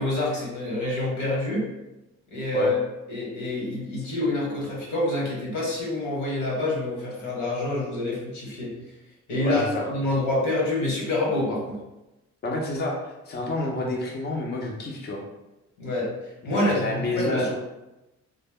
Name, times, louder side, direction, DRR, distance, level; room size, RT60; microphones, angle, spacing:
voice 1, 0.0-1.7 2.3-2.8 3.1-8.7 9.3-11.8 15.8-17.5, left 2 dB, 85° left, -4 dB, 1.1 m, -27 dB
voice 2, 9.4-9.9 12.4-15.2 16.4-17.6, left 2 dB, 35° left, -2 dB, 0.5 m, -29 dB
2.1 x 2.0 x 3.4 m, 0.99 s
cardioid pair, 90°, 30 cm